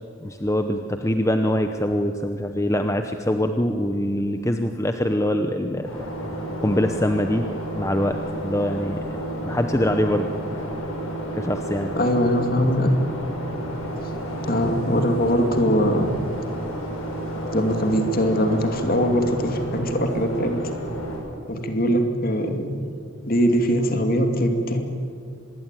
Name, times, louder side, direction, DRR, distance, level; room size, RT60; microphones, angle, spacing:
voice 1, 0.2-6.1 6.6-7.5 7.8-9.1 9.4-10.7 11.3-11.9, left 1 dB, 15° left, 6 dB, 0.8 m, -24 dB
sound 1, 5.8-21.2, right 1 dB, 80° left, 7.6 m, -31 dB
voice 2, 11.9-12.9 14.5-16.1 17.5-20.6 21.5-22.7 23.3-24.8, equal, 45° left, 5 dB, 2.5 m, -21 dB
25.0 x 20.5 x 9.1 m, 2.6 s
head